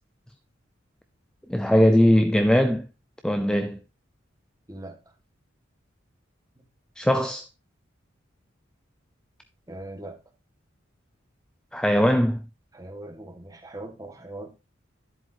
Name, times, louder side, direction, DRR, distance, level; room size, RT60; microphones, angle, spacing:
voice 1, 1.5-2.9 3.2-3.8 7.0-7.5 11.7-12.4, equal, 5° left, 0.4 m, -20 dB
voice 2, 4.7-5.1 6.5-6.6 9.7-10.2 12.7-14.5, right 2 dB, 20° right, 1.5 m, -40 dB
10.5 x 7.7 x 2.7 m
head